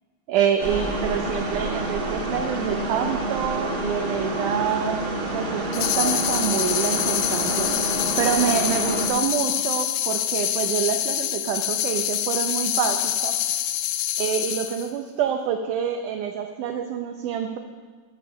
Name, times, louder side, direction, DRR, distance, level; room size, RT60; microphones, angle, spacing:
voice 1, 0.3-5.0 5.3-7.7 8.2-13.4 14.2-17.6, right 8 dB, 75° right, 4 dB, 2.0 m, -26 dB
sound 1, 0.6-9.1, right 2 dB, 50° right, 1.7 m, -28 dB
sound 2, 5.7-14.9, left 12 dB, 80° left, 2.1 m, -26 dB
14.5 x 6.5 x 6.7 m, 1.5 s
omnidirectional pair, 4.0 m